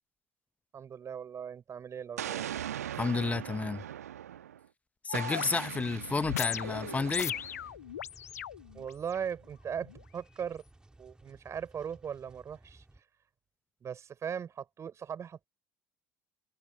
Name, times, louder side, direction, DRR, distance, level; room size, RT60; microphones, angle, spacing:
voice 1, 0.7-2.5 8.7-10.6 11.0-12.8 13.8-15.5, right 7 dB, 35° right, 6.6 m, -39 dB
Explosion, 2.2-4.6 5.1-7.7, right 10 dB, 75° right, 1.4 m, -40 dB
voice 2, 2.9-3.8 5.0-7.3, left 4 dB, 15° left, 1.2 m, -31 dB
sound 1, 5.1-9.2 9.9-10.0, left 10 dB, 75° left, 0.5 m, -38 dB
sound 2, 6.6-13.0, right 2 dB, 10° right, 3.8 m, -58 dB
figure-of-eight pair, 60°, 9 cm